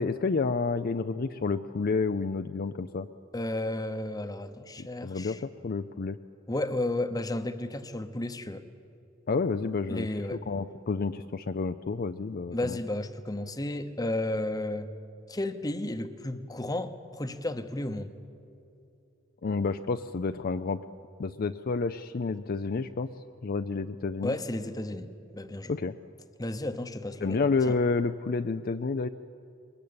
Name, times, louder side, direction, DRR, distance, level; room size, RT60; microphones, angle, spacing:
voice 1, 0.0-3.1 4.8-6.2 9.3-12.8 19.4-20.8 21.2-23.1 23.4-24.4 25.7-26.0 27.2-29.1, left 4 dB, 45° left, 9 dB, 0.5 m, -30 dB
voice 2, 3.3-5.4 6.5-8.6 9.9-10.4 12.5-14.9 15.3-18.1 24.2-25.1 25.3-25.8 26.4-27.4 27.7-27.8, left 1 dB, 20° left, 10 dB, 0.9 m, -33 dB
22.0 x 20.5 x 8.7 m, 2.6 s
head